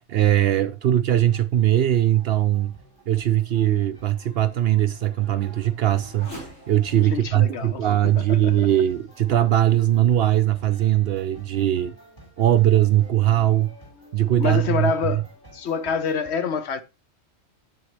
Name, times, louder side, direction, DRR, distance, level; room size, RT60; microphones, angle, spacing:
voice 1, 0.0-2.7 3.1-6.3 6.7-11.9 12.4-13.7 14.1-15.2, right 12 dB, 65° right, 0.7 m, -20 dB
sound 1, 1.1-16.3, right 1 dB, 40° left, 3.8 m, -51 dB
Race car auto racing / Accelerating revving vroom, 2.1-10.0 10.6-10.7 11.3-16.0, equal, 90° left, 4.8 m, -50 dB
voice 2, 6.9-8.7 14.4-15.2 15.5-16.8, left 6 dB, 65° left, 1.0 m, -27 dB
8.3 x 7.0 x 3.2 m
omnidirectional pair, 1.3 m